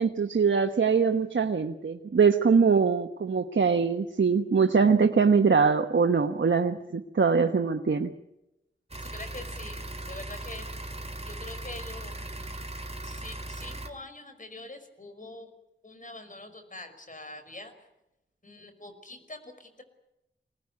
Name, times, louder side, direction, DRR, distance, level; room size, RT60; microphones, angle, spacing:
voice 1, 0.0-8.1, right 5 dB, 75° right, 5 dB, 1.2 m, -23 dB
sound 1, 8.9-13.9, right 1 dB, 30° right, 2.5 m, -38 dB
voice 2, 9.0-10.7 11.3-12.6 13.0-15.5 15.8-17.7 18.4-19.8, left 2 dB, 40° left, 8 dB, 5.2 m, -44 dB
24.5 x 19.0 x 9.6 m, 0.90 s
wide cardioid pair, 50°, 20 cm